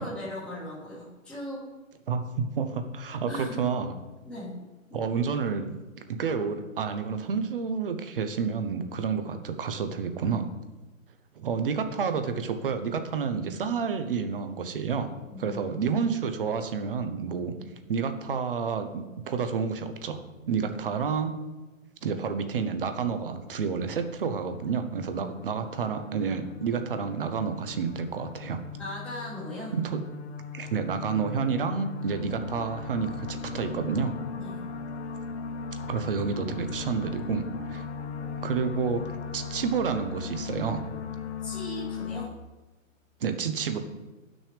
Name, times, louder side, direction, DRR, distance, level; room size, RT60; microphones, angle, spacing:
voice 1, 0.0-1.7 3.3-3.6 4.2-4.6 4.9-5.0 9.2-9.3 15.3-16.0 17.5-17.7 20.6-20.7 28.8-29.7 34.3-34.7 41.4-42.3, equal, 5° left, -10 dB, 1.3 m, -39 dB
voice 2, 2.1-3.9 4.9-5.7 6.2-10.5 11.4-15.1 15.4-17.5 17.9-21.3 22.0-28.6 29.7-30.0 30.5-34.1 35.9-37.5 37.7-37.8 38.4-40.8 43.2-43.8, right 6 dB, 40° right, 8 dB, 0.8 m, -29 dB
sound 1, 24.2-42.3, left 5 dB, 55° left, 0.8 m, -38 dB
11.0 x 6.2 x 3.4 m, 1.1 s
hypercardioid pair, 170°, 41 cm